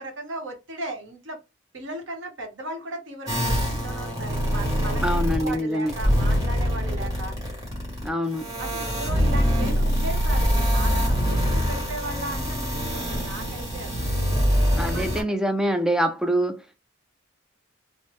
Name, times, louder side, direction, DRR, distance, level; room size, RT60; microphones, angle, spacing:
voice 1, 0.0-1.4 1.7-7.4 8.6-14.1 14.8-15.3, right 1 dB, 80° right, 1.0 m, -36 dB
sound 1, 3.3-5.6 5.9-15.2, equal, 20° right, 1.2 m, -24 dB
voice 2, 5.0-5.9 8.0-8.5 14.8-16.8, equal, 5° right, 0.3 m, -25 dB
3.2 x 2.1 x 3.0 m
head